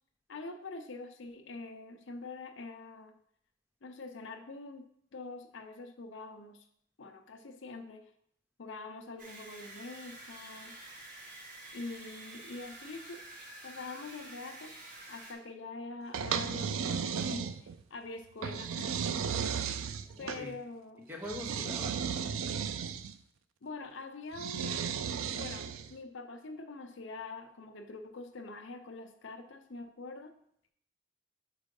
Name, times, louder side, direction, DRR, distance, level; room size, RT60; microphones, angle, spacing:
voice 1, 0.3-3.2 3.8-4.9 5.1-6.7 7.0-8.1 8.6-10.7 11.7-13.2 13.6-14.8 15.1-19.6 20.2-21.1 23.6-24.8 25.3-30.4, left 3 dB, 65° left, 6 dB, 0.6 m, -45 dB
sound 1, 9.2-15.3, right 2 dB, 40° right, 1.2 m, -49 dB
sound 2, 16.1-17.8 18.4-20.4 21.3-23.1 24.3-25.9, right 7 dB, 80° right, 0.4 m, -35 dB
voice 2, 19.9-20.5 21.1-22.0, left 1 dB, 10° right, 0 dB, 0.9 m, -43 dB
4.9 x 4.5 x 5.3 m, 0.69 s
head